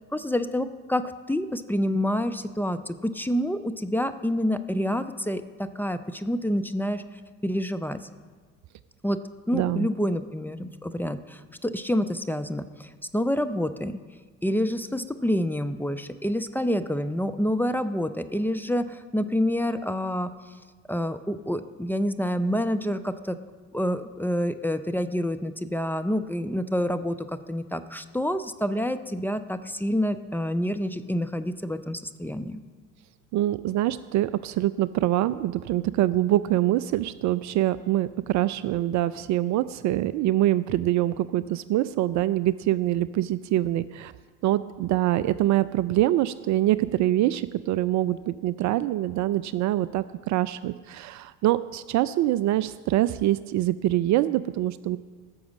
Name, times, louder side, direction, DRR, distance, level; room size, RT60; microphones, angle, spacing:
voice 1, 0.1-7.0 7.4-8.0 9.0-14.0 14.4-20.3 20.9-23.4 23.7-32.6, equal, 5° left, 10 dB, 0.6 m, -28 dB
voice 2, 9.5-9.9 33.3-44.1 44.4-55.0, right 14 dB, 45° right, 16 dB, 0.5 m, -24 dB
15.5 x 6.2 x 7.2 m, 1.4 s
hypercardioid pair, 60°, 41 cm